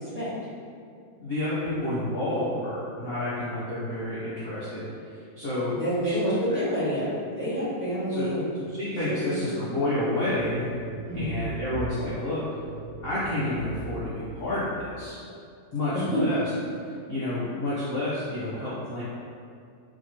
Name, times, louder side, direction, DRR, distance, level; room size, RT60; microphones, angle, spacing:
voice 1, 1.2-5.7 6.0-6.2 8.1-8.3 8.8-10.7 11.1-12.4 13.0-15.2 15.7-16.4 16.8-19.0, left 1 dB, 45° left, -11 dB, 0.9 m, -30 dB
voice 2, 5.7-7.1 7.3-8.5 9.1-9.6 11.1-11.3 15.9-16.2, equal, 10° right, -14 dB, 1.3 m, -28 dB
sound 1, 10.1-15.0, right 3 dB, 55° right, 0.9 m, -40 dB
4.8 x 3.0 x 2.9 m, 2.4 s
omnidirectional pair, 1.8 m